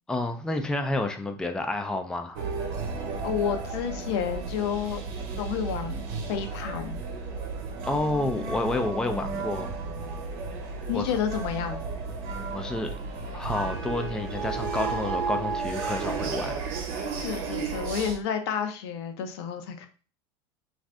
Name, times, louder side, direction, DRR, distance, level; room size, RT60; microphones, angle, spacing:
voice 1, 0.1-2.5 7.8-9.7 10.9-11.2 12.5-12.9 13.3-16.6, left 2 dB, 5° left, 0.4 m, -29 dB
sound 1, 2.3-18.2, right 4 dB, 65° right, 0.8 m, -33 dB
voice 2, 3.2-5.0 5.4-7.0 10.9-11.8 17.2-19.9, left 8 dB, 70° left, 0.7 m, -30 dB
2.6 x 2.4 x 3.3 m
supercardioid pair, 105°, 14 cm